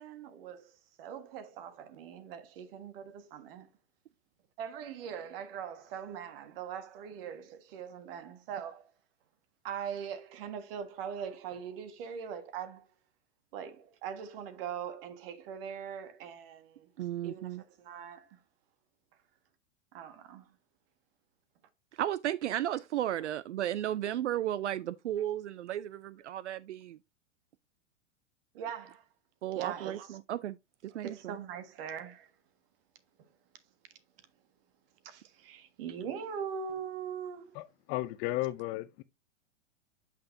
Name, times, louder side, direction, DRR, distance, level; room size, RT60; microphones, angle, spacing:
voice 1, 0.0-3.7 4.6-8.9 9.6-12.9 13.5-16.9 17.2-18.4 19.9-20.5 28.5-29.0 29.5-30.2 30.9-32.3 35.0-37.5, right 8 dB, 50° right, 1.6 m, -41 dB
voice 2, 17.0-17.6 22.0-27.0 29.4-30.6 30.8-31.3, right 12 dB, 75° right, 0.5 m, -34 dB
voice 3, 37.5-39.0, left 18 dB, 30° left, 0.4 m, -34 dB
8.6 x 5.9 x 2.6 m
hypercardioid pair, 105°, 36 cm